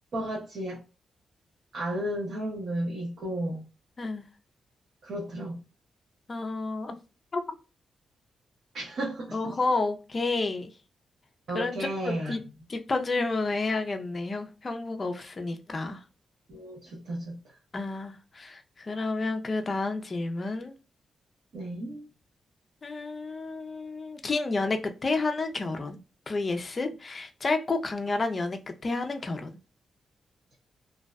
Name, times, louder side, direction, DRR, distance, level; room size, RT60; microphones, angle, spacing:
voice 1, 0.1-0.8 1.7-3.6 5.0-5.6 8.7-9.6 11.5-12.3 16.5-17.5 21.5-22.1, right 1 dB, 65° right, 0.8 m, -33 dB
voice 2, 6.3-7.0 7.3-7.4 9.3-10.7 11.5-11.8 12.0-12.4 12.7-16.0 17.7-20.7 22.8-26.0 26.3-29.6, left 3 dB, 30° left, 0.4 m, -30 dB
2.5 x 2.1 x 2.4 m
wide cardioid pair, 140°, 0 cm